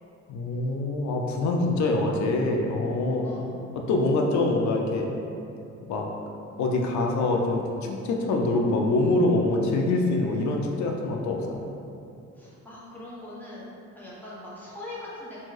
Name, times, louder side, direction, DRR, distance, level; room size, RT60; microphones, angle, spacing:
voice 1, 0.3-3.3 3.9-5.1 5.9-6.1 6.6-11.6, left 2 dB, 70° left, 1 dB, 0.5 m, -25 dB
voice 2, 3.2-3.6 12.3-15.4, left 1 dB, 5° left, -9 dB, 0.8 m, -41 dB
2.6 x 2.2 x 3.1 m, 2.6 s
cardioid pair, 90°, 30 cm